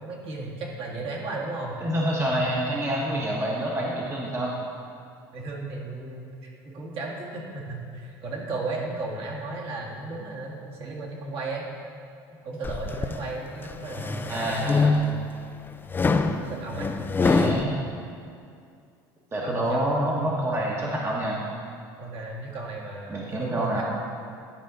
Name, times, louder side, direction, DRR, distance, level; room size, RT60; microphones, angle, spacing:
voice 1, 0.0-1.8 5.3-11.7 12.4-14.7 15.0-15.2 16.4-16.9 19.4-20.3 22.0-23.8, right 2 dB, 55° right, -3 dB, 1.8 m, -35 dB
voice 2, 1.8-4.5 14.3-14.9 17.2-17.8 19.3-21.4 23.1-23.8, right 1 dB, 25° right, -3 dB, 1.2 m, -27 dB
sound 1, 12.6-13.2 13.7-15.3 15.9-17.6, left 3 dB, 20° left, 0.4 m, -24 dB
11.5 x 4.9 x 3.9 m, 2.4 s
supercardioid pair, 85°, 11 cm